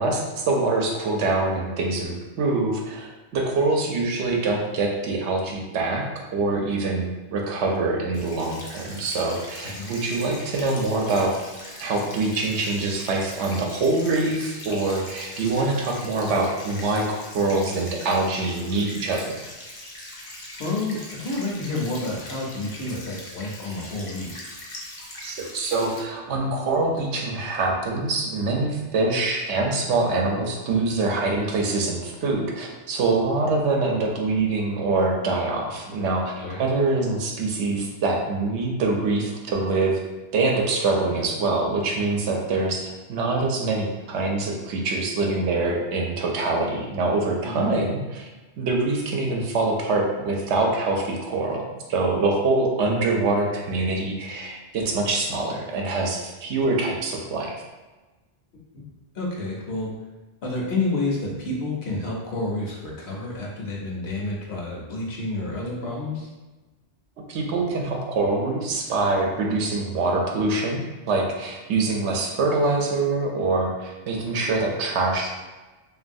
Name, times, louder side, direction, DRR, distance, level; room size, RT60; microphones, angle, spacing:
voice 1, 0.0-11.3 11.8-19.4 25.2-40.0 40.3-48.3 48.6-51.6 51.9-57.5 67.3-75.3, right 3 dB, 75° right, 0 dB, 0.9 m, -24 dB
sound 1, 8.1-26.0, left 1 dB, 40° left, 0.5 m, -41 dB
voice 2, 20.6-24.3 36.4-36.6 47.4-47.7 58.7-58.8 59.1-59.9 60.4-66.3, left 2 dB, 65° left, -3 dB, 1.0 m, -29 dB
3.0 x 2.6 x 2.6 m, 1.2 s
omnidirectional pair, 1.2 m